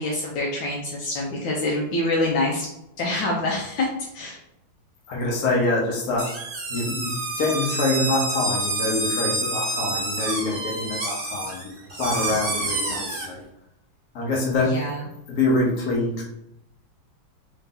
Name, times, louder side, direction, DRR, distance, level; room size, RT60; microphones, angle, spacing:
voice 1, 0.0-2.7 3.0-3.9 4.1-4.4 14.6-15.0, left 2 dB, 75° left, -2 dB, 1.4 m, -26 dB
voice 2, 5.1-6.3 6.7-11.7 12.0-13.4 14.1-14.8 15.3-16.2, left 2 dB, 50° left, -2 dB, 1.3 m, -25 dB
sound 1, 6.2-13.3, right 2 dB, 50° right, 1.5 m, -28 dB
3.8 x 2.8 x 3.7 m, 0.82 s
omnidirectional pair, 2.3 m